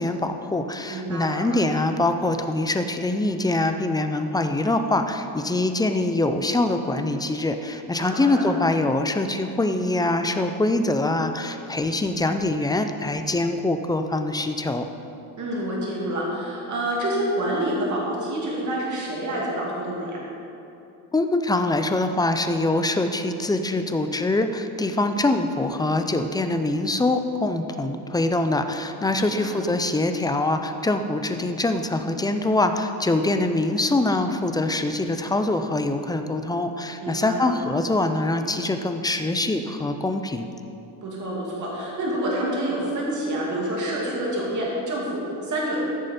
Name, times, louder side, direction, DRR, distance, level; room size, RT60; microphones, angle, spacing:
voice 1, 0.0-14.8 21.1-40.5, left 2 dB, 10° left, 7 dB, 0.4 m, -24 dB
voice 2, 0.9-1.4 8.0-8.4 15.4-20.2 29.0-29.6 37.0-37.5 41.0-45.8, right 1 dB, 45° right, -4 dB, 2.6 m, -28 dB
14.0 x 6.5 x 4.3 m, 2.8 s
cardioid pair, 125°, 41 cm